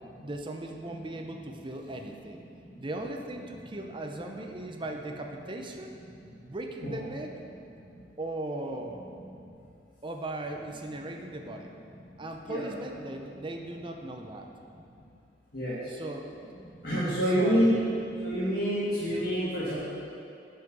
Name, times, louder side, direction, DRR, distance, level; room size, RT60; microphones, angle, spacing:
voice 1, 0.2-2.4 2.8-6.0 6.4-7.3 8.2-9.0 10.0-11.8 12.2-14.5 15.8-16.3 17.3-17.7, right 1 dB, 30° right, 3 dB, 0.6 m, -38 dB
voice 2, 16.8-17.8 18.2-19.7, equal, 55° left, -11 dB, 2.0 m, -26 dB
10.5 x 5.7 x 5.4 m, 2.6 s
head